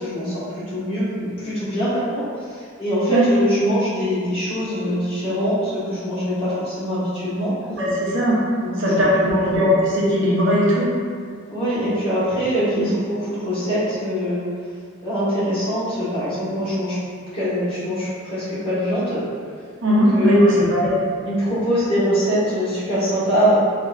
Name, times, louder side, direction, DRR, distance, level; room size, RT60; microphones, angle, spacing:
voice 1, 0.0-7.5 8.6-9.4 11.5-14.4 15.0-17.0 17.3-19.2 19.9-20.7 21.2-23.6, equal, 25° left, -13 dB, 1.4 m, -23 dB
voice 2, 7.8-8.4 8.8-10.9 12.7-12.9 19.8-21.0, equal, 65° right, -6 dB, 0.7 m, -18 dB
4.0 x 2.5 x 2.4 m, 2.1 s
head